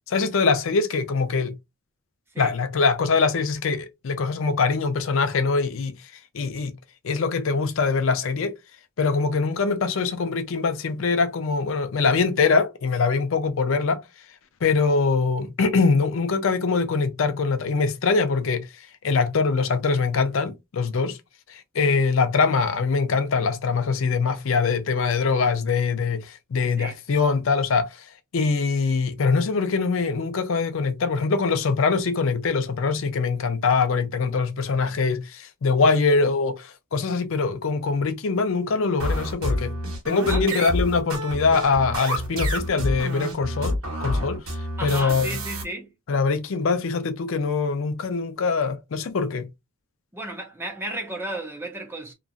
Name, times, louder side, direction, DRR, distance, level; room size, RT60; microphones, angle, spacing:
voice 1, 0.1-1.5 2.4-5.9 6.3-6.7 7.0-8.6 9.0-14.0 14.6-18.7 19.0-21.2 21.5-28.1 28.3-39.7 40.1-44.4 44.8-45.4 46.1-49.5, left 4 dB, 65° left, 0.5 m, -23 dB
sound 1, 39.0-45.6, equal, 85° right, 1.3 m, -28 dB
voice 2, 40.3-40.7 44.8-45.9 50.1-52.1, right 2 dB, 10° right, 0.7 m, -33 dB
2.9 x 2.4 x 2.4 m
head